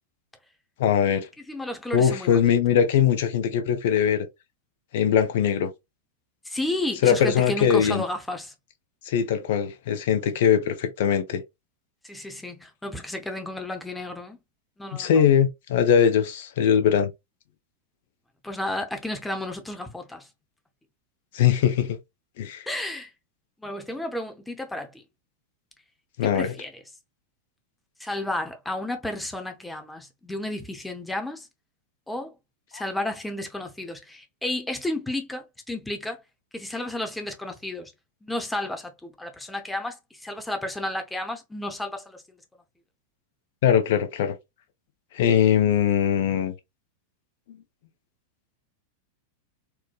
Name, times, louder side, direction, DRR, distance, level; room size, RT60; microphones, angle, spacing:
voice 1, 0.8-1.3 1.9-4.3 4.9-5.7 7.0-8.0 9.1-11.4 15.0-17.1 21.3-22.0 22.4-22.6 26.2-26.5 32.7-32.8 43.6-44.3 45.1-46.5, left 8 dB, 55° left, 0.6 m, -21 dB
voice 2, 1.5-2.4 6.4-8.5 12.0-14.4 14.8-15.3 18.4-20.3 22.7-23.1 23.6-25.0 26.3-26.8 28.0-31.5 32.1-32.3 32.7-36.2 36.5-37.9 38.2-42.4, left 1 dB, 5° left, 0.8 m, -32 dB
4.5 x 2.1 x 2.3 m
figure-of-eight pair, 90°, 0 cm